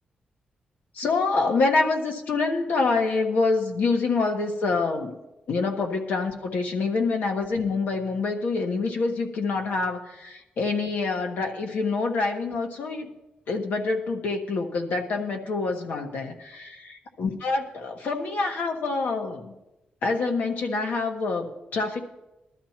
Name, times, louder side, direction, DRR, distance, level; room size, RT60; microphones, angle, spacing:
voice 1, 0.9-5.1 5.5-13.1 13.5-19.5 20.0-22.0, left 3 dB, 75° left, 3 dB, 1.4 m, -26 dB
20.0 x 12.5 x 2.9 m, 0.97 s
wide cardioid pair, 150°, 3 cm